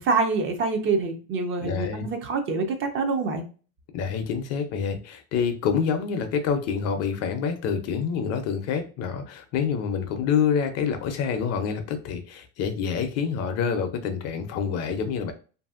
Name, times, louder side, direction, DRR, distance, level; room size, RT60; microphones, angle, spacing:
voice 1, 0.0-3.5, right 4 dB, 35° right, 0.5 m, -26 dB
voice 2, 1.6-2.1 3.9-15.3, left 6 dB, 45° left, 0.5 m, -27 dB
2.7 x 2.6 x 2.4 m
supercardioid pair, 125°, 36 cm